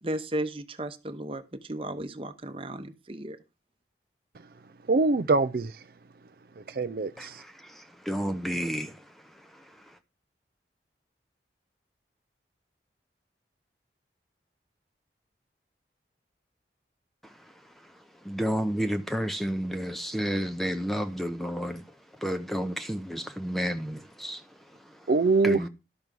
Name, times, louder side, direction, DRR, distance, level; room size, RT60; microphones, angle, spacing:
voice 1, 0.0-3.4, right 1 dB, 30° right, 0.9 m, -35 dB
voice 2, 4.9-5.8 6.6-7.4 25.1-25.6, right 3 dB, 55° right, 0.5 m, -24 dB
voice 3, 7.2-8.9 18.2-21.8 22.2-24.4 25.4-25.7, equal, ahead, 0.6 m, -31 dB
12.5 x 6.1 x 5.2 m
head